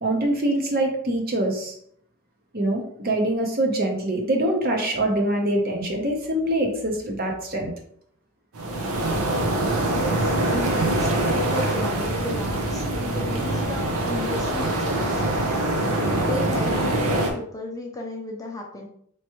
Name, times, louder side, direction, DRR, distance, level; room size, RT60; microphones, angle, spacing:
voice 1, 0.0-1.7 2.5-7.7, right 1 dB, 40° right, 2 dB, 0.8 m, -24 dB
sound 1, 8.5-17.3, right 1 dB, 85° right, 0.8 m, -24 dB
voice 2, 9.8-18.9, left 1 dB, 15° left, 0 dB, 0.6 m, -34 dB
4.5 x 3.1 x 3.0 m, 0.66 s
head